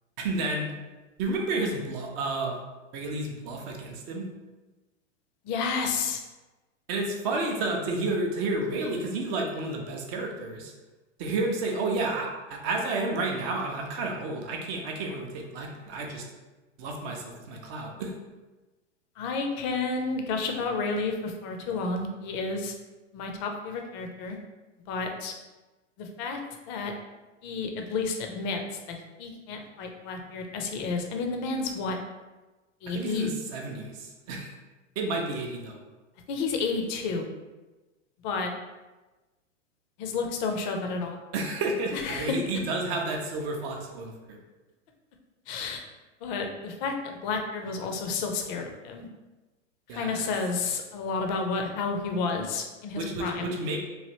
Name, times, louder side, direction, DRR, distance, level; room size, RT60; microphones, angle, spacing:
voice 1, 0.2-0.7 1.2-2.6 2.9-4.3 6.9-10.7 11.2-16.2 16.8-18.1 32.9-34.5 35.0-35.8 41.3-44.4 49.9-50.3 53.0-53.8, right 2 dB, 30° right, 1 dB, 0.5 m, -31 dB
voice 2, 5.4-6.2 7.3-7.4 19.2-22.7 23.1-24.4 24.9-25.3 26.0-26.4 26.7-26.9 27.4-32.0 32.8-33.3 35.1-35.2 36.3-37.3 38.2-38.5 40.0-41.2 41.9-42.4 45.5-45.8 46.2-49.1 49.9-53.5, left 4 dB, 40° left, 3 dB, 0.5 m, -31 dB
3.1 x 2.5 x 2.8 m, 1.2 s
hypercardioid pair, 110°, 38 cm